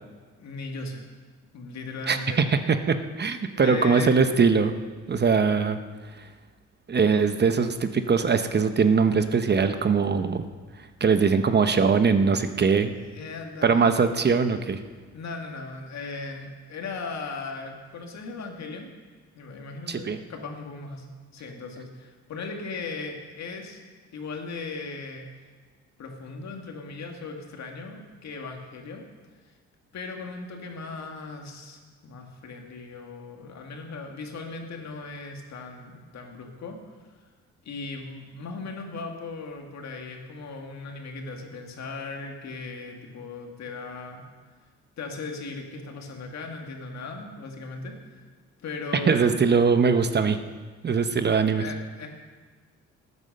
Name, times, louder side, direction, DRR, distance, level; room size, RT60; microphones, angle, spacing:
voice 1, 0.4-1.1 1.5-2.4 3.5-4.2 12.9-13.9 15.1-18.9 19.4-21.1 21.3-23.8 24.1-25.2 26.0-29.1 29.9-36.8 37.6-44.2 45.0-48.3 48.6-49.3 51.5-52.1, left 3 dB, 65° left, 2 dB, 2.2 m, -37 dB
voice 2, 2.1-4.7 5.1-5.8 6.9-10.4 11.0-12.9 13.6-14.8 19.9-20.2 49.1-50.4 50.8-51.6, right 5 dB, 35° right, 9 dB, 0.8 m, -21 dB
13.0 x 9.6 x 6.6 m, 1.4 s
cardioid pair, 90°, 30 cm